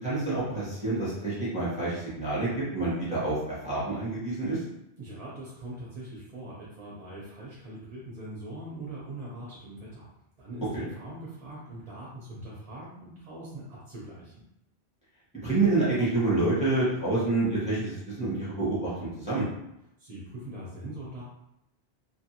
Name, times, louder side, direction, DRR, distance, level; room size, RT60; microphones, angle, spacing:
voice 1, 0.0-4.6 10.7-10.8 15.4-19.4, right 2 dB, 5° right, -10 dB, 1.0 m, -28 dB
voice 2, 5.0-10.1 10.4-14.3 20.0-21.2, right 1 dB, 40° right, -6 dB, 0.6 m, -42 dB
2.7 x 2.5 x 2.8 m, 0.83 s
omnidirectional pair, 1.1 m